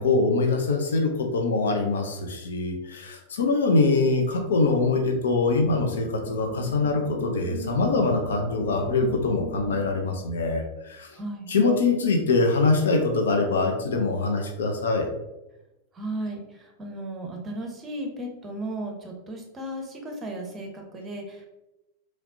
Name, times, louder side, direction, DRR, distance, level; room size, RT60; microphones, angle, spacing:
voice 1, 0.0-11.1 11.5-15.1, left 3 dB, 65° left, 3 dB, 0.6 m, -23 dB
sound 1, 5.1-10.2, left 2 dB, 40° left, 1.2 m, -39 dB
voice 2, 11.1-11.5 15.9-21.5, right 1 dB, 20° right, 2 dB, 0.8 m, -35 dB
4.1 x 3.1 x 2.6 m, 0.96 s
figure-of-eight pair, 90°, 0 cm